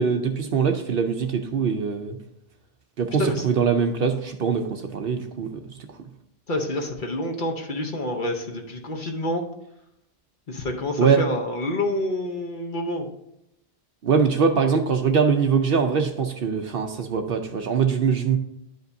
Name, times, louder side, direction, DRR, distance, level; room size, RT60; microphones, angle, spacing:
voice 1, 0.0-2.2 3.0-5.5 11.0-11.2 14.0-18.4, right 6 dB, 60° right, 6 dB, 0.7 m, -22 dB
voice 2, 6.5-9.4 10.5-13.1, left 1 dB, 45° left, 3 dB, 0.9 m, -27 dB
11.0 x 5.2 x 2.6 m, 0.80 s
omnidirectional pair, 1.2 m